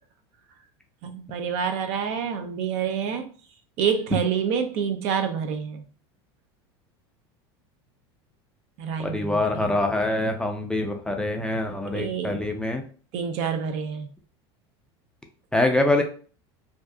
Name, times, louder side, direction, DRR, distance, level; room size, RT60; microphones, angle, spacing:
voice 1, 1.0-3.3 3.8-5.8 8.8-9.8 11.9-12.4 13.1-14.1, right 7 dB, 60° right, 0.5 m, -27 dB
voice 2, 9.0-12.8 15.5-16.0, left 1 dB, 5° left, 0.3 m, -24 dB
2.6 x 2.3 x 2.2 m
supercardioid pair, 105°, 13 cm